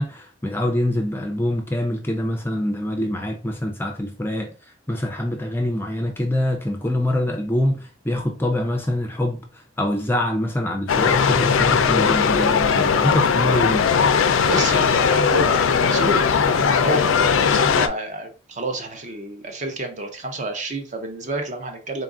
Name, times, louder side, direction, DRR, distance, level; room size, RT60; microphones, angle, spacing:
voice 1, 0.0-4.5 4.9-9.4 9.8-14.0, left 1 dB, 10° left, 0.4 m, -24 dB
sound 1, 10.9-17.9, left 6 dB, 80° left, 0.4 m, -18 dB
voice 2, 14.4-22.0, right 2 dB, 35° right, 0.7 m, -29 dB
3.9 x 2.4 x 3.7 m
head